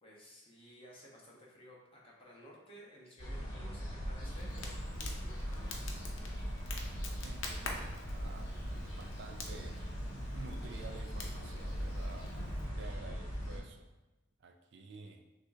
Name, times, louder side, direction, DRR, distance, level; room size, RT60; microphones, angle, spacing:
voice 1, 0.0-6.2, equal, 25° left, -4 dB, 0.9 m, -56 dB
sound 1, 3.2-13.6, equal, 60° left, 1.4 m, -40 dB
Crackle, 4.0-12.7, left 2 dB, 80° left, 0.6 m, -46 dB
voice 2, 7.2-8.5 8.9-9.8 10.3-12.3 12.8-13.9 14.4-15.2, right 3 dB, 55° right, 5 dB, 0.3 m, -51 dB
6.1 x 2.4 x 2.6 m, 1.1 s
head